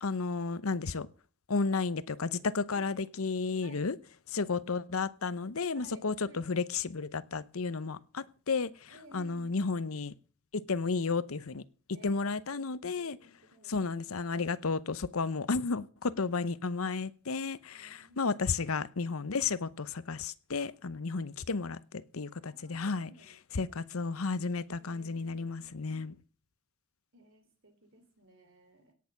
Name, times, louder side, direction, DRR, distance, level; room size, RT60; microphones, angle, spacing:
voice 1, 0.0-1.1 1.5-4.0 4.3-10.1 10.5-11.6 12.0-13.2 13.7-23.1 23.5-26.1, left 4 dB, 75° left, 17 dB, 0.8 m, -33 dB
voice 2, 5.7-6.5 8.9-9.6 11.9-13.8 15.2-15.4 17.7-18.4 22.5-23.8 24.7-26.2 27.1-28.9, right 1 dB, 60° right, 7 dB, 3.4 m, -58 dB
17.5 x 6.7 x 7.2 m, 0.40 s
head